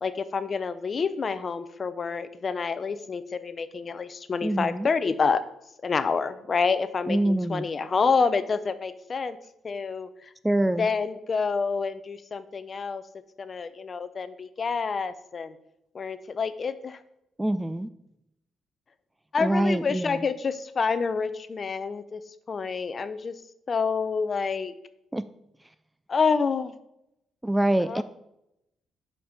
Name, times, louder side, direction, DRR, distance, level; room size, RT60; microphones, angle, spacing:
voice 1, 0.0-5.4 5.8-9.4 9.6-10.3 10.8-13.0 13.4-15.6 15.9-17.0 19.3-22.2 22.5-23.4 23.7-24.7 26.1-26.7 27.9-28.0, left 5 dB, 40° left, 13 dB, 0.6 m, -28 dB
voice 2, 4.4-4.9 7.1-7.7 10.4-10.9 17.4-17.9 19.4-20.2 25.1-25.3 27.4-28.0, right 1 dB, 10° right, 14 dB, 0.3 m, -25 dB
5.6 x 5.3 x 6.5 m, 0.83 s
cardioid pair, 100°, 0 cm